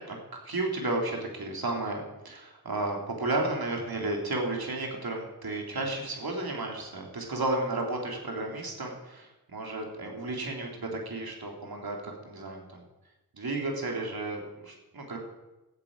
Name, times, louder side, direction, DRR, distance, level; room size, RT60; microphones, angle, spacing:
voice 1, 0.1-12.8 13.3-15.2, right 2 dB, 70° right, 0 dB, 3.3 m, -33 dB
13.5 x 9.1 x 8.8 m, 1.0 s
wide cardioid pair, 70°, 37 cm